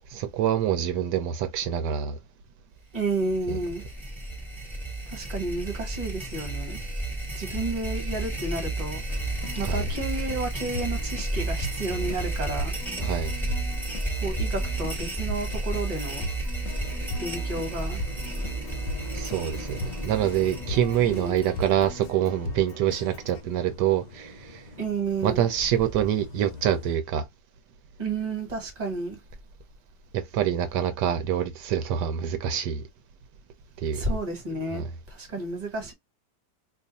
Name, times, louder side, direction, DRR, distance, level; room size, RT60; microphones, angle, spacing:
voice 1, 0.1-2.2 3.5-3.6 9.6-9.9 13.0-13.3 19.1-24.7 25.2-27.3 30.1-32.8 33.8-34.1 34.7-34.9, right 10 dB, 80° right, 1.2 m, -26 dB
voice 2, 2.9-3.8 5.1-6.8 7.3-9.0 9.6-12.7 14.2-16.3 17.2-18.0 21.0-21.4 24.8-25.4 28.0-29.2 33.9-35.9, right 2 dB, 25° right, 1.2 m, -31 dB
sound 1, 3.0-22.0, right 2 dB, ahead, 0.7 m, -32 dB
Keyboard (musical), 9.1-23.4, left 3 dB, 65° left, 0.9 m, -39 dB
sound 2, 16.7-27.0, left 3 dB, 90° left, 0.3 m, -44 dB
2.8 x 2.4 x 4.0 m
omnidirectional pair, 1.8 m